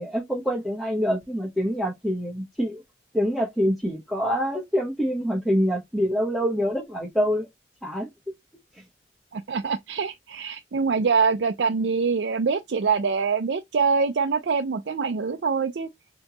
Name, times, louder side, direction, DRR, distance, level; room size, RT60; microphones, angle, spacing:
voice 1, 0.0-2.8 3.1-7.5 7.8-8.1 8.7-8.8, equal, ahead, 0.8 m, -25 dB
voice 2, 9.3-15.9, right 5 dB, 70° right, 0.5 m, -24 dB
4.3 x 2.9 x 2.9 m
head